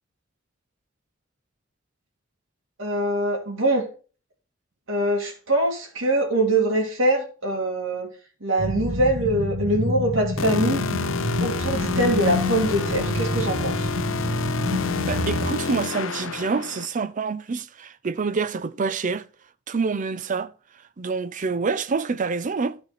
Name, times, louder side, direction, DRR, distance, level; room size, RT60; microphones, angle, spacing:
voice 1, 2.8-3.8 4.9-8.1 8.4-10.8 11.4-13.9, right 1 dB, 75° right, 2.4 m, -23 dB
sound 1, 8.6-15.5, equal, 60° right, 1.5 m, -28 dB
sound 2, 10.4-16.9, left 5 dB, 85° left, 0.6 m, -29 dB
voice 2, 15.1-19.3 19.7-20.5 21.0-22.8, right 4 dB, 40° right, 0.5 m, -27 dB
12.5 x 4.4 x 4.1 m
head